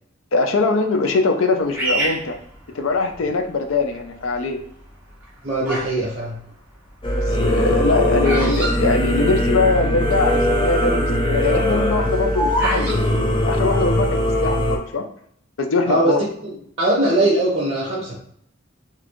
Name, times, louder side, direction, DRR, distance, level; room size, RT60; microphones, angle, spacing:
voice 1, 0.3-2.4 2.7-4.6 7.1-13.0 13.5-15.0 15.6-16.2, left 3 dB, 75° left, 6 dB, 0.5 m, -22 dB
Bird vocalization bird call bird song, 1.7-3.2 3.9-4.3 5.1-6.0 6.3-9.8 10.0-10.1 10.3-10.7 11.1-13.0, right 1 dB, 10° right, 1.1 m, -26 dB
voice 2, 5.4-6.4 15.9-16.2 16.4-18.1, right 1 dB, 30° right, -6 dB, 1.1 m, -20 dB
Singing / Musical instrument, 7.0-14.8, left 1 dB, 25° left, 0.5 m, -20 dB
4.1 x 2.8 x 3.0 m, 0.67 s
head